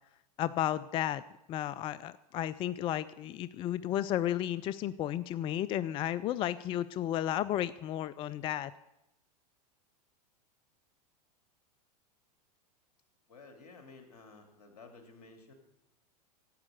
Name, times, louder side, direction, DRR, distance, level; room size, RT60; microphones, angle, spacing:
voice 1, 0.4-1.2 1.5-8.7, left 12 dB, 25° left, 16 dB, 0.3 m, -33 dB
voice 2, 13.3-15.5, left 3 dB, 70° left, 4 dB, 2.5 m, -53 dB
11.5 x 8.5 x 8.0 m, 0.90 s
hypercardioid pair, 95°, 21 cm